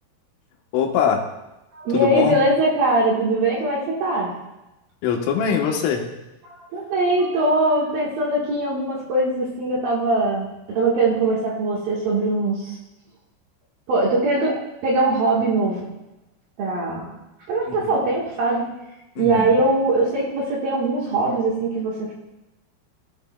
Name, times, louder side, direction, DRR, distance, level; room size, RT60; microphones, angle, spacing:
voice 1, 0.7-1.2 1.9-2.4 5.0-6.0 17.7-18.0 19.2-19.6, left 7 dB, 85° left, 2 dB, 3.6 m, -22 dB
voice 2, 1.7-4.3 6.4-12.8 13.9-14.5 14.8-15.8 16.6-17.0 17.5-18.7 19.2-22.1, right 2 dB, 65° right, -4 dB, 2.7 m, -21 dB
16.5 x 8.0 x 2.3 m, 0.99 s
omnidirectional pair, 5.7 m